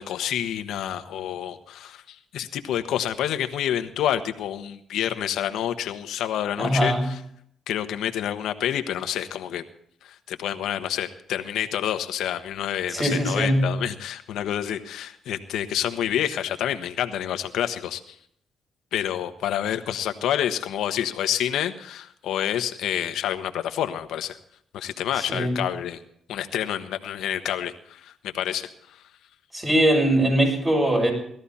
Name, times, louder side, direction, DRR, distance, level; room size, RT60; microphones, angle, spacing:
voice 1, 0.0-7.2 7.7-9.6 10.0-18.1 18.9-24.4 24.7-26.0 26.3-29.0, left 10 dB, 80° left, 8 dB, 1.2 m, -28 dB
voice 2, 6.6-7.1 12.9-13.7 25.2-25.6 29.5-31.1, right 1 dB, 20° right, 1 dB, 6.8 m, -21 dB
18.5 x 13.5 x 4.3 m, 0.69 s
cardioid pair, 90°, 0 cm